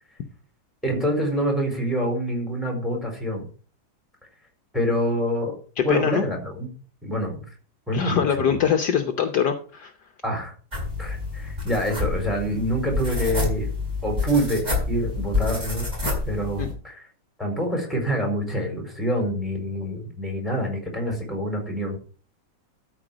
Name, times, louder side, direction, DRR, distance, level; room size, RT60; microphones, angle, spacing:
voice 1, 0.8-3.5 4.7-5.5 5.8-6.7 7.0-7.4 7.9-8.5 10.2-10.5 11.0-13.7 14.0-15.9 16.3-17.1 17.4-22.0, equal, ahead, 1 dB, 4.4 m, -26 dB
voice 2, 5.9-6.2 7.9-9.9 16.6-16.7, left 8 dB, 65° left, 7 dB, 1.4 m, -23 dB
sound 1, 10.7-16.7, left 3 dB, 20° right, 4.6 m, -28 dB
13.0 x 4.8 x 6.1 m, 0.39 s
omnidirectional pair, 2.1 m